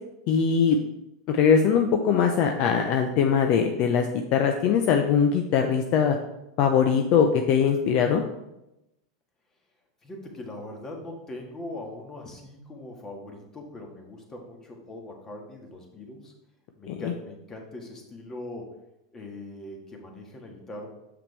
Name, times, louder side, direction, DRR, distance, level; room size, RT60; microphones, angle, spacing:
voice 1, 0.3-0.8 1.3-6.2 6.6-8.2 16.9-17.0, left 7 dB, 50° left, 5 dB, 0.6 m, -21 dB
voice 2, 10.0-16.3 16.8-18.7 19.1-20.9, left 1 dB, 20° left, 1 dB, 1.6 m, -41 dB
7.1 x 5.8 x 3.3 m, 0.90 s
hypercardioid pair, 110°, 2 cm